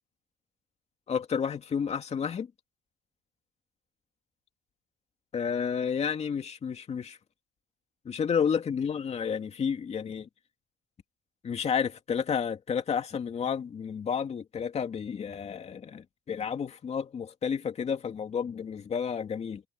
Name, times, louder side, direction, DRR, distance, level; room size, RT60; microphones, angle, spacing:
voice 1, 1.1-2.5 5.3-7.2 8.0-10.3 11.4-19.6, left 7 dB, 40° left, 2.6 m, -31 dB
cardioid pair, 110°, 17 cm